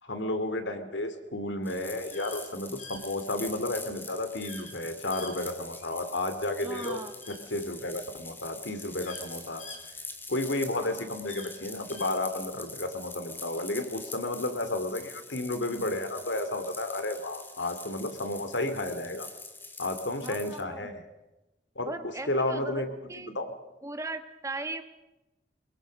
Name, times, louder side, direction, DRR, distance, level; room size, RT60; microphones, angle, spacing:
voice 1, 0.0-7.0 7.3-9.6 10.3-19.3 19.8-21.0 21.8-21.9 22.3-22.9 23.2-23.5, left 2 dB, 90° left, 9 dB, 2.6 m, -32 dB
sound 1, 1.6-20.6, left 3 dB, 10° left, 1.8 m, -45 dB
sound 2, 2.1-2.4 2.8-3.0 4.4-4.7 5.1-6.0 6.7-7.4 8.3-8.4 8.7-10.5 11.2-12.1, left 3 dB, 40° left, 4.5 m, -46 dB
voice 2, 6.6-7.2 10.7-11.1 20.2-20.9 21.8-22.8 23.1-23.3 23.8-24.8, right 2 dB, 15° right, 8 dB, 1.3 m, -38 dB
23.5 x 22.0 x 6.4 m, 1.0 s
head